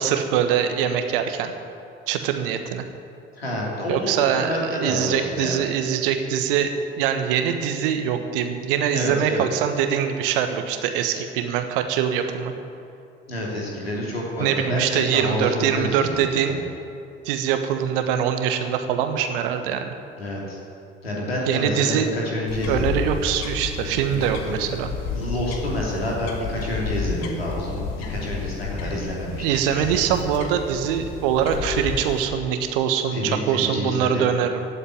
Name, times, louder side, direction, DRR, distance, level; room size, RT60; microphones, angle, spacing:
voice 1, 0.0-1.5 2.1-2.8 3.9-6.7 7.0-12.5 14.4-16.6 17.2-19.9 21.5-22.1 22.7-24.9 29.4-34.6, right 8 dB, 65° right, 7 dB, 1.3 m, -23 dB
voice 2, 3.4-5.6 8.9-9.4 13.3-16.6 20.2-20.6 21.0-23.1 24.1-24.6 25.1-29.9 33.1-34.4, left 1 dB, 85° left, -3 dB, 3.0 m, -28 dB
sound 1, 22.5-32.2, left 5 dB, 60° left, 1.6 m, -31 dB
15.5 x 8.5 x 9.4 m, 2.5 s
figure-of-eight pair, 50°, 30 cm